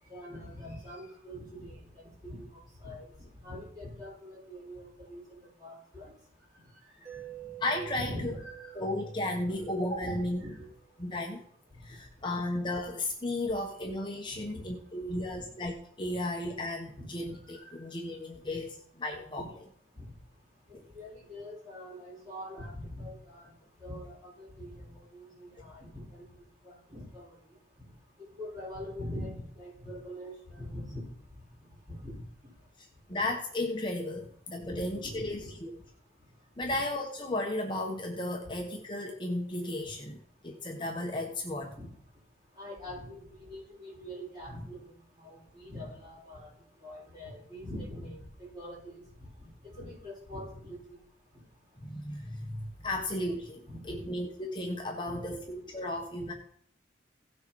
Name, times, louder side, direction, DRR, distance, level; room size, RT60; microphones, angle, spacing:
voice 1, 0.0-6.1 6.5-7.3 7.9-8.8 9.5-9.6 10.0-10.7 11.7-12.2 13.4-13.5 14.3-14.7 15.1-15.5 17.0-17.9 18.5-18.6 19.9-20.1 20.7-23.5 23.8-26.3 26.6-31.4 31.9-32.2 34.6-35.5 36.7-36.8 41.8-41.9 42.5-46.5 46.8-51.0 51.3-51.4 53.7-54.1 55.1-55.2, left 1 dB, 25° right, -7 dB, 6.3 m, -44 dB
Mallet percussion, 7.0-10.8, right 14 dB, 45° right, 1.6 m, -48 dB
voice 2, 7.6-8.3 8.7-10.6 11.0-11.5 11.8-19.4 20.7-20.8 32.8-35.7 36.6-41.7 51.8-56.3, left 1 dB, 25° left, 0 dB, 1.1 m, -34 dB
17.0 x 6.6 x 4.7 m, 0.64 s
head